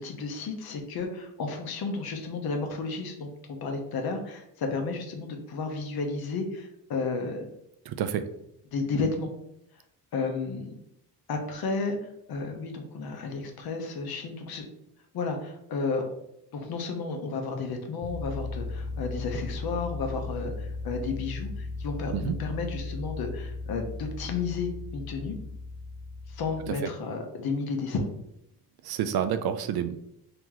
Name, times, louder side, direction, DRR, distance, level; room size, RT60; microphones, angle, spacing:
voice 1, 0.0-7.5 8.7-9.3 10.1-10.7 11.3-14.6 15.1-16.0 16.5-25.3 26.3-28.0, left 4 dB, 70° left, 4 dB, 0.9 m, -32 dB
voice 2, 7.9-8.2 22.1-22.3 28.9-30.0, right 9 dB, 75° right, 10 dB, 0.5 m, -28 dB
sound 1, 18.0-26.7, left 3 dB, 10° right, 0.4 m, -36 dB
3.0 x 3.0 x 3.7 m, 0.78 s
cardioid pair, 100°, 37 cm